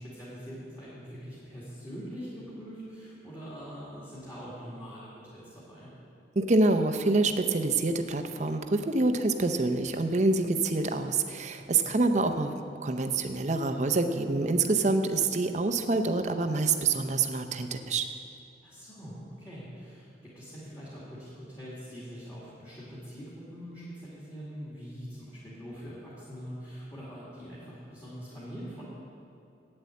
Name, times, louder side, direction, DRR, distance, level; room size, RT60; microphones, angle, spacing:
voice 1, 0.0-5.9 11.5-11.9 18.6-20.1 20.3-28.8, equal, 20° left, -9 dB, 2.2 m, -43 dB
voice 2, 6.4-12.5 12.8-18.1, right 3 dB, 40° right, 7 dB, 0.6 m, -26 dB
8.8 x 7.8 x 8.3 m, 2.7 s
head